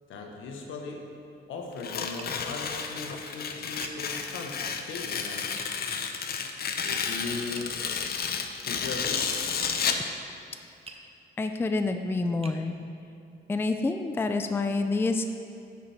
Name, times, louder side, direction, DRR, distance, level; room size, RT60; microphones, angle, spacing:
voice 1, 0.1-1.1 1.5-5.6 6.8-7.8 8.6-9.2, left 3 dB, 75° left, 2 dB, 1.1 m, -38 dB
Tearing, 1.8-10.1, left 6 dB, 50° left, 0.6 m, -31 dB
Tap, 2.2-2.4 3.8-4.0 5.6-5.7 7.4-7.8 9.2-9.3 10.9-11.1 11.8-11.9 12.4-12.6, right 4 dB, 30° right, 0.7 m, -46 dB
voice 2, 11.4-12.7 13.5-15.2, left 3 dB, 10° left, 7 dB, 0.4 m, -27 dB
11.0 x 4.7 x 4.3 m, 2.6 s
cardioid pair, 90°, 20 cm